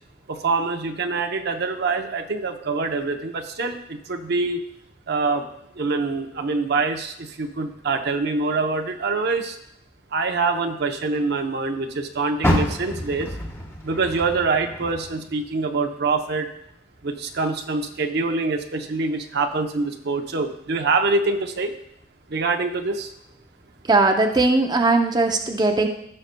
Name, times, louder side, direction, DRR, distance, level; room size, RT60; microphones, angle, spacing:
voice 1, 0.3-4.6 5.1-5.4 5.7-9.6 10.1-13.3 13.8-16.5 17.0-21.7 22.3-23.1, right 3 dB, 60° right, 5 dB, 0.7 m, -25 dB
Car, 12.4-15.7 16.1-17.4 17.9-18.0 18.6-18.7, equal, 15° left, 1.1 m, -28 dB
voice 2, 23.9-25.9, right 3 dB, 20° right, 4 dB, 0.6 m, -19 dB
15.5 x 6.4 x 2.2 m, 0.77 s
head